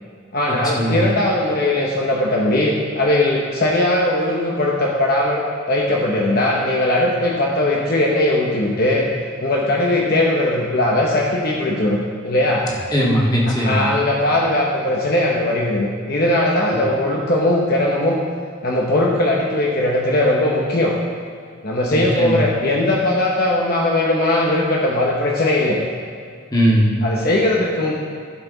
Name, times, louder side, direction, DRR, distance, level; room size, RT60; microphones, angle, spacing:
voice 1, 0.3-9.1 9.4-12.0 12.2-12.7 13.5-18.2 18.6-20.9 21.6-25.8 27.0-27.9, left 1 dB, 45° left, -2 dB, 1.0 m, -19 dB
voice 2, 12.9-13.9 22.2-22.4 26.5-27.0, equal, 20° left, -4 dB, 1.7 m, -18 dB
14.5 x 6.9 x 4.0 m, 2.2 s
head